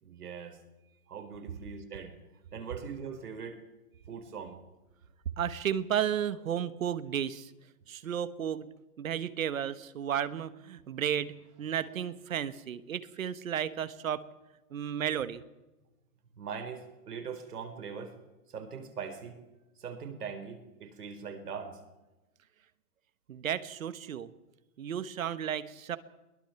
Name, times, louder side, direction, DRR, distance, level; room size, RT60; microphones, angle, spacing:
voice 1, 0.0-0.6 1.1-2.1 2.5-3.6 4.1-4.6 16.4-18.2 18.5-19.4 19.8-21.8, right 6 dB, 75° right, 7 dB, 4.3 m, -41 dB
voice 2, 5.4-7.5 7.9-8.7 9.0-14.2 14.7-15.4 23.3-24.3 24.8-26.0, right 9 dB, 60° right, 14 dB, 1.3 m, -33 dB
22.0 x 20.5 x 5.9 m, 1.0 s
hypercardioid pair, 175°, 46 cm